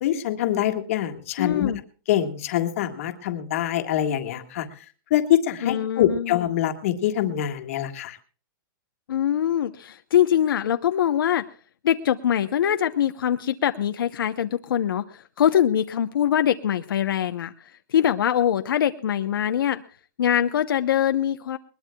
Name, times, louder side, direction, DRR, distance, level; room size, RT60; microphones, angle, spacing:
voice 1, 0.0-1.7 2.1-4.7 5.1-8.2, left 11 dB, 40° left, 6 dB, 1.7 m, -24 dB
voice 2, 1.4-1.8 5.6-6.4 9.1-11.4 11.8-19.8 20.2-21.6, left 10 dB, 75° left, 8 dB, 0.9 m, -23 dB
21.0 x 20.0 x 2.3 m, 0.38 s
hypercardioid pair, 180°, 12 cm